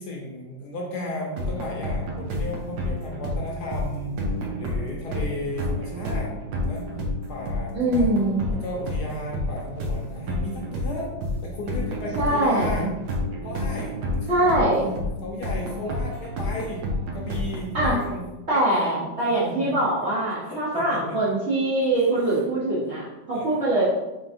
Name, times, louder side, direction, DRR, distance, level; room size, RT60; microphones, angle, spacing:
voice 1, 0.0-6.3 6.6-6.9 7.3-8.1 8.5-11.1 11.4-12.9 13.4-13.9 14.2-14.6 15.2-16.8 17.1-18.2 18.5-19.0 19.3-20.1 20.5-21.2 22.1-22.2 23.3-23.7, left 1 dB, 70° left, -2 dB, 1.1 m, -35 dB
sound 1, 1.4-18.2, left 1 dB, 80° right, 1.3 m, -30 dB
voice 2, 7.7-8.5 12.2-12.9 14.3-14.9 17.7-18.0 18.5-23.8, right 1 dB, 50° right, -9 dB, 0.9 m, -23 dB
3.7 x 3.4 x 2.5 m, 1.0 s
omnidirectional pair, 2.0 m